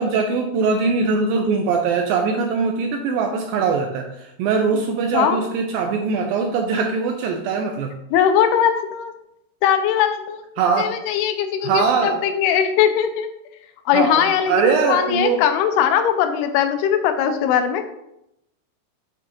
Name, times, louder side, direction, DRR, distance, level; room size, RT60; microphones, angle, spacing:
voice 1, 0.0-7.9 10.6-10.9 11.6-12.3 13.9-15.4, right 5 dB, 85° right, 3 dB, 2.1 m, -21 dB
voice 2, 8.1-9.1 9.6-10.4 10.8-13.3 13.9-17.9, left 9 dB, 85° left, 8 dB, 2.6 m, -20 dB
8.2 x 5.0 x 3.0 m, 0.82 s
omnidirectional pair, 4.6 m